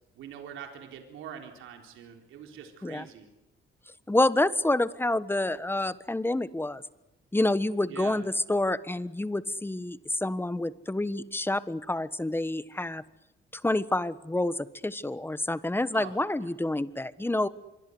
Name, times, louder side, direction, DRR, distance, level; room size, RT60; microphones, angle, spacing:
voice 1, 0.1-3.3 7.9-8.2 15.9-16.2, right 8 dB, 85° right, 4 dB, 3.9 m, -44 dB
voice 2, 4.1-6.8 7.3-13.0 13.5-17.5, left 2 dB, 10° left, 15 dB, 1.4 m, -28 dB
26.0 x 23.5 x 8.0 m, 0.95 s
cardioid pair, 90°, 20 cm